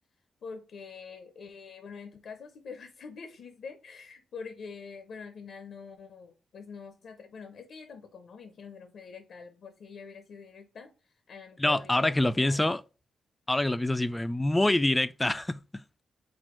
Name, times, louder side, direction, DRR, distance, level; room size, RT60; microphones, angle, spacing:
voice 1, 0.4-12.6, left 5 dB, 75° left, 0.6 m, -45 dB
voice 2, 11.6-12.8 13.5-16.0, left 1 dB, 15° left, 0.3 m, -26 dB
4.3 x 2.4 x 4.5 m
cardioid pair, 75°, 0 cm